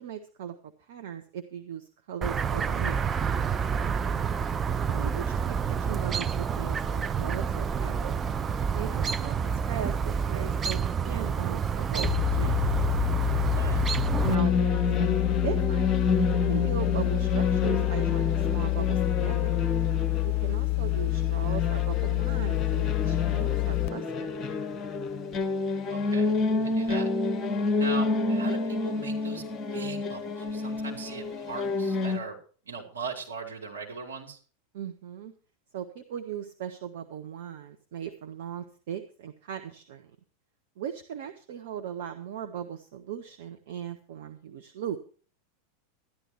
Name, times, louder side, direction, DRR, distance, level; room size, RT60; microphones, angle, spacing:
voice 1, 0.0-3.0 4.7-8.1 8.7-12.7 14.2-15.9 16.3-19.6 20.2-24.4 34.7-35.3 35.7-40.1 40.8-45.0, right 9 dB, 55° right, 6 dB, 1.1 m, -38 dB
Chirp tweet, 2.2-14.3, right 6 dB, 20° right, 0.5 m, -28 dB
sound 1, 12.0-23.9, left 24 dB, 50° left, 0.7 m, -27 dB
voice 2, 13.4-14.0 25.9-26.3 26.6-27.1 27.8-29.4 29.7-32.4 32.6-34.4, right 4 dB, 70° right, 1 dB, 2.9 m, -39 dB
sound 2, 14.2-32.2, left 3 dB, 20° left, 1.4 m, -29 dB
13.0 x 11.0 x 4.4 m, 0.39 s
figure-of-eight pair, 85°, 0 cm